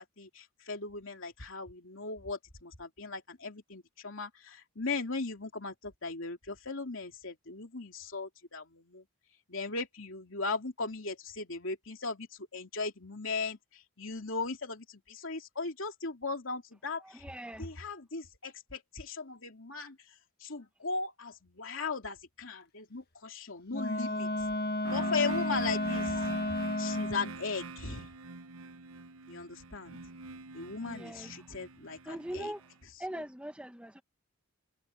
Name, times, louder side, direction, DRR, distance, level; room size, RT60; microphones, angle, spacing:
voice 1, 0.0-9.0 9.5-17.2 17.6-24.3 24.9-26.4 26.8-28.1 29.3-30.0 30.5-32.5 33.1-33.2, left 4 dB, 60° left, 3.1 m, -38 dB
voice 2, 17.2-17.7 30.8-31.3 32.1-32.6 33.0-34.0, right 1 dB, 5° right, 1.0 m, -41 dB
Wind instrument woodwind instrument, 23.7-27.4, left 1 dB, 45° left, 1.5 m, -32 dB
sound 1, 24.8-32.7, right 3 dB, 70° right, 0.9 m, -43 dB
head